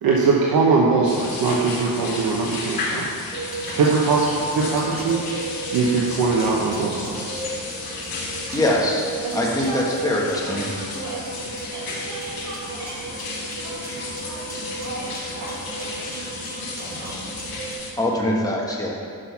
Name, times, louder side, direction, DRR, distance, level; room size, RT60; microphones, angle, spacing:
voice 1, 0.0-3.1 3.8-5.2 5.7-7.4, right 4 dB, 80° right, -3 dB, 1.0 m, -21 dB
sound 1, 1.0-17.9, left 3 dB, 80° left, 1.4 m, -33 dB
sound 2, 3.3-17.8, right 3 dB, 25° right, 0.7 m, -35 dB
voice 2, 8.5-9.1 9.3-10.6 18.0-18.9, left 1 dB, 10° left, -4 dB, 1.4 m, -22 dB
voice 3, 9.2-17.2, right 1 dB, 55° right, -6 dB, 2.1 m, -37 dB
6.4 x 6.0 x 5.7 m, 2.3 s
cardioid pair, 125°, 35 cm